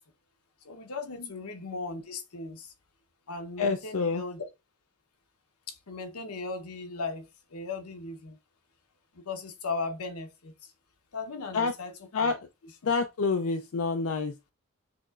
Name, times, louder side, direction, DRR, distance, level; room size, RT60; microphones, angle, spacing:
voice 1, 0.6-2.7 3.3-4.4 5.7-8.4 9.1-10.5 11.1-11.9 12.2-12.3, left 3 dB, 90° left, 0.9 m, -37 dB
voice 2, 3.6-4.2 11.5-11.7 12.1-12.5 12.8-14.5, left 4 dB, 70° left, 0.5 m, -28 dB
6.8 x 3.0 x 2.4 m
head